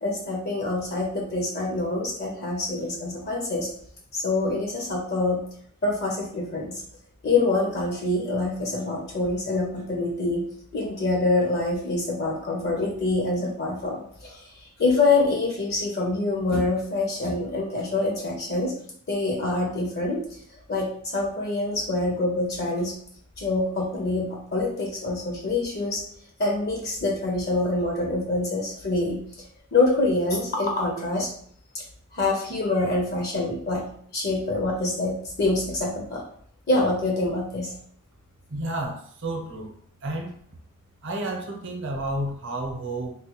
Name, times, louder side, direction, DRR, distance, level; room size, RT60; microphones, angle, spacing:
voice 1, 0.0-3.7 4.1-5.4 5.8-6.8 7.2-10.4 10.7-18.7 19.1-20.4 20.7-22.9 23.4-26.0 26.4-29.2 29.7-31.3 32.1-33.8 34.1-36.2 36.7-37.7, left 2 dB, 45° left, -1 dB, 0.6 m, -25 dB
voice 2, 38.5-39.7 40.0-40.4 41.0-43.2, right 1 dB, 55° right, 2 dB, 0.7 m, -31 dB
3.6 x 2.2 x 2.9 m, 0.62 s
head